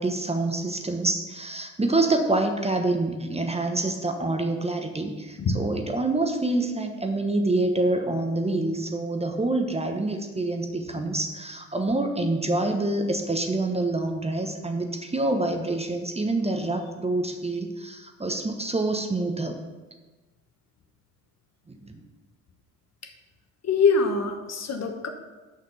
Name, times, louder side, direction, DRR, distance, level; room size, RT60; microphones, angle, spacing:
voice 1, 0.0-19.6 21.7-21.9, right 2 dB, 15° right, 4 dB, 1.1 m, -26 dB
voice 2, 23.6-25.1, left 4 dB, 40° left, 5 dB, 1.3 m, -23 dB
6.5 x 5.7 x 6.9 m, 1.2 s
hypercardioid pair, 55°, 40 cm